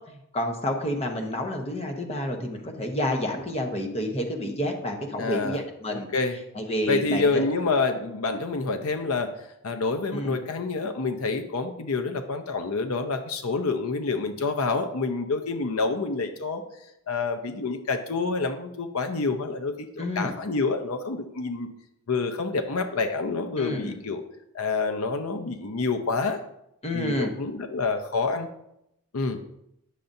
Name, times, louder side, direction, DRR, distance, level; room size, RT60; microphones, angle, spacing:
voice 1, 0.1-6.1 6.5-7.4 10.1-10.4 20.0-20.3 23.6-23.9 26.8-27.3, left 1 dB, 30° left, 3 dB, 1.0 m, -29 dB
voice 2, 5.2-5.6 5.9-6.4 6.9-9.4 9.6-16.6 17.1-21.7 22.1-24.2 24.5-26.4 26.9-28.5 29.1-29.4, left 3 dB, 70° left, 6 dB, 0.7 m, -27 dB
10.0 x 6.7 x 2.7 m, 0.81 s
head